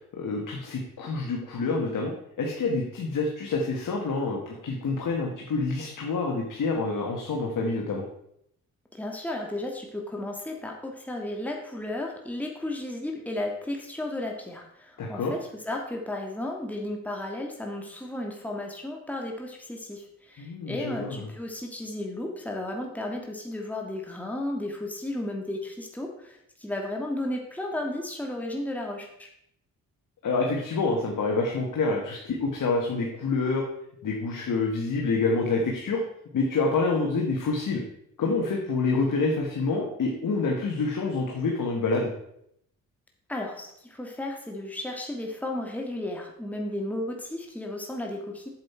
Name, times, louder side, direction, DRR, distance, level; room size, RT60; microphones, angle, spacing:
voice 1, 0.1-8.0 15.0-15.3 20.4-21.3 30.2-33.6 34.0-36.0 36.3-37.8 38.2-42.1, left 3 dB, 65° left, 0 dB, 1.6 m, -27 dB
voice 2, 8.9-15.4 15.6-29.3 43.3-48.5, left 1 dB, 5° left, 0 dB, 1.7 m, -34 dB
7.5 x 7.5 x 4.4 m, 0.74 s
cardioid pair, 65°, 35 cm